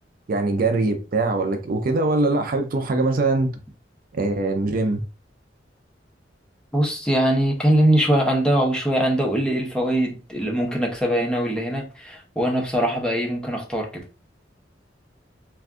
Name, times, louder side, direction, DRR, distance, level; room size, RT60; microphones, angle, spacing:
voice 1, 0.3-3.6 4.1-5.0, right 2 dB, 50° right, 0.4 m, -22 dB
voice 2, 6.7-14.0, right 1 dB, 5° left, 0.6 m, -22 dB
2.5 x 2.3 x 3.5 m
head